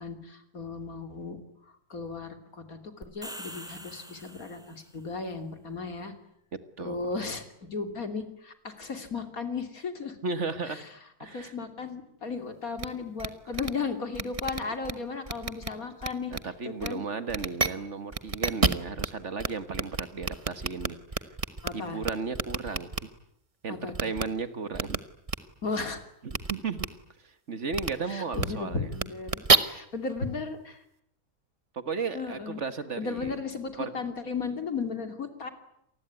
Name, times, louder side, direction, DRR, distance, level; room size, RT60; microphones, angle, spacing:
voice 1, 0.0-1.4 1.9-6.1 6.8-10.2 11.2-16.3 16.6-17.0 21.6-22.0 23.7-24.1 25.6-26.0 28.1-30.8 32.1-32.6 33.0-35.5, left 4 dB, 70° left, 7 dB, 3.4 m, -35 dB
sound 1, 3.0-4.9, equal, ahead, 3.3 m, -44 dB
voice 2, 10.2-10.8 11.2-11.5 16.3-21.0 21.7-23.1 23.6-23.8 24.0-25.0 26.2-26.9 27.2-28.9 31.7-33.4 33.8-33.9, right 4 dB, 50° right, 11 dB, 1.8 m, -34 dB
sound 2, 12.8-12.9 13.2-13.3 13.5-13.7 14.1-14.9 15.3-15.7 16.0-16.4 16.8-16.9 17.3-17.7 18.1-19.1 19.4-19.5 19.7-21.7 22.0-23.0 23.9-24.2 24.7-25.0 25.3-25.4 26.3-26.5 26.8-26.9 27.7-27.9 28.3-28.5 28.9-29.6, right 4 dB, 25° right, 1.0 m, -27 dB
27.5 x 20.0 x 9.7 m, 0.77 s
omnidirectional pair, 1.6 m